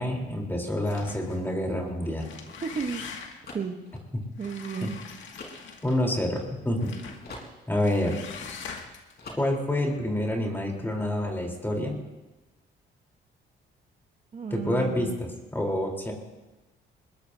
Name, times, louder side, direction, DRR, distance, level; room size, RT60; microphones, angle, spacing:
voice 1, 0.0-2.3 4.8-4.9 5.8-6.9 7.7-8.2 9.3-12.0 14.5-16.1, left 1 dB, 10° left, 0 dB, 3.8 m, -28 dB
sound 1, 0.8-1.5 2.1-3.5 4.4-6.1 6.8-7.2 7.8-9.1, left 6 dB, 70° left, 2.1 m, -42 dB
sound 2, 1.6-6.9 7.2-8.9 9.2-9.9, left 2 dB, 55° left, 4.2 m, -47 dB
voice 2, 2.6-3.0 3.5-3.8 4.4-5.0 14.3-15.2, right 6 dB, 35° right, 4 dB, 1.1 m, -33 dB
21.0 x 21.0 x 2.8 m, 1.1 s
cardioid pair, 90°, 20 cm